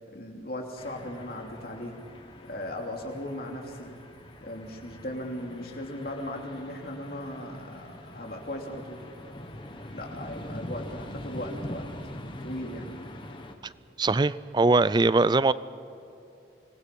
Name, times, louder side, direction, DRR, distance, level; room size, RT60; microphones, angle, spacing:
voice 1, 0.1-1.9 2.4-3.9 4.4-9.0 9.8-11.9 12.1-12.9, left 1 dB, 55° left, 1 dB, 3.0 m, -37 dB
sound 1, 0.8-13.5, left 1 dB, 30° left, 1.3 m, -43 dB
voice 2, 14.0-15.5, right 3 dB, 25° right, 17 dB, 0.4 m, -21 dB
26.0 x 20.0 x 5.4 m, 2.9 s
head